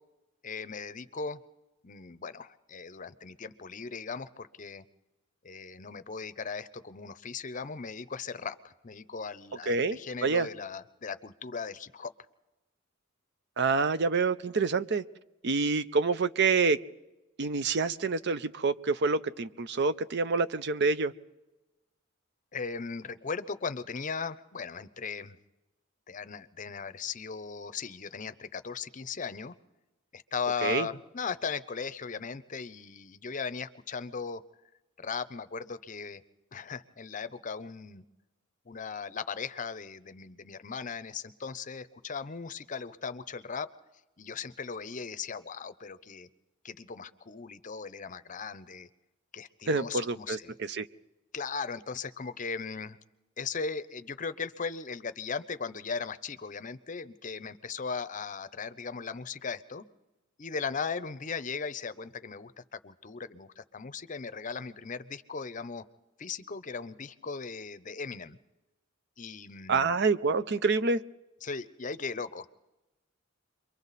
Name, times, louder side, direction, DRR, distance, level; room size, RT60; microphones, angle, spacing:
voice 1, 0.4-1.4 1.8-4.8 5.4-12.1 22.5-25.4 26.1-29.5 30.1-34.4 35.0-36.2 36.5-38.0 38.7-43.7 44.2-46.3 46.6-48.9 49.3-50.6 51.3-53.0 53.4-59.9 60.4-65.8 66.2-68.4 69.2-70.0 71.4-72.5, left 5 dB, 40° left, 13 dB, 0.7 m, -38 dB
voice 2, 9.7-10.5 13.6-15.0 15.4-16.8 17.4-21.1 30.6-30.9 49.7-50.9 69.7-71.0, right 4 dB, 55° right, 14 dB, 0.6 m, -27 dB
28.5 x 23.5 x 4.1 m, 1.0 s
head